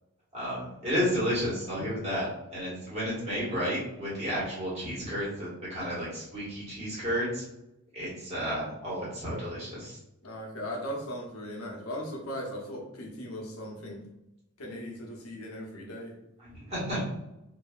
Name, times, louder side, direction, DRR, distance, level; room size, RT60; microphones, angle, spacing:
voice 1, 0.3-7.4 7.9-10.0 16.4-17.0, equal, 30° right, -8 dB, 1.4 m, -32 dB
voice 2, 10.2-14.0 14.6-16.1, equal, 75° left, -1 dB, 0.8 m, -38 dB
2.7 x 2.6 x 2.3 m, 0.88 s
head